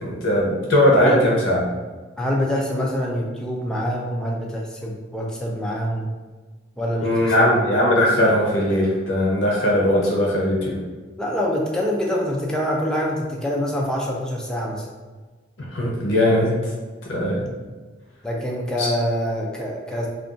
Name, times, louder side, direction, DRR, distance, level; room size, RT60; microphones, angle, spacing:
voice 1, 0.0-1.6 7.0-10.8 15.7-16.5 17.1-17.5 18.8-18.9, left 1 dB, 80° left, -3 dB, 0.7 m, -19 dB
voice 2, 2.2-6.1 6.8-7.7 11.2-14.9 18.2-20.1, equal, 5° left, -3 dB, 0.4 m, -25 dB
2.5 x 2.2 x 3.7 m, 1.3 s
head